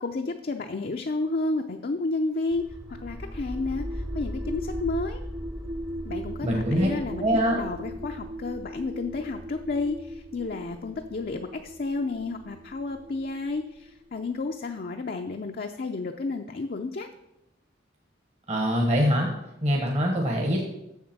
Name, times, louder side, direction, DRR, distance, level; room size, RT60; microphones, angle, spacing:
voice 1, 0.0-2.6 3.0-3.8 4.1-5.2 6.0-17.1, left 3 dB, 50° left, 4 dB, 0.5 m, -31 dB
sound 1, 2.5-14.3, equal, 15° right, 0.8 m, -37 dB
voice 2, 6.4-6.9 7.2-7.6 18.5-19.3 19.6-20.6, equal, 40° right, 0 dB, 1.2 m, -23 dB
7.2 x 7.1 x 6.0 m, 0.89 s
head